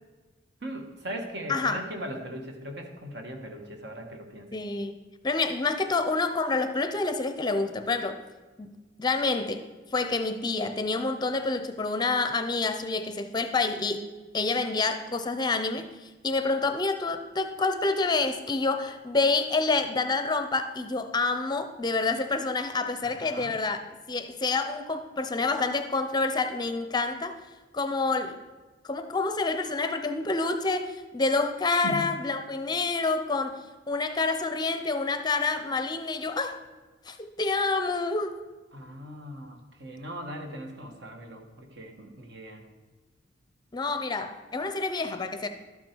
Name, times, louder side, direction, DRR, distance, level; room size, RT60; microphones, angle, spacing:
voice 1, 0.6-4.5 23.0-23.6 31.8-32.1 38.7-42.6, equal, 65° right, 4 dB, 1.5 m, -39 dB
voice 2, 1.5-1.8 4.5-8.2 8.6-9.6 9.9-14.0 14.3-23.8 24.1-27.3 27.7-28.4 28.8-33.6 33.9-36.6 37.1-38.3 43.7-45.5, left 3 dB, 25° left, 9 dB, 0.6 m, -28 dB
12.0 x 8.5 x 4.5 m, 1.3 s
head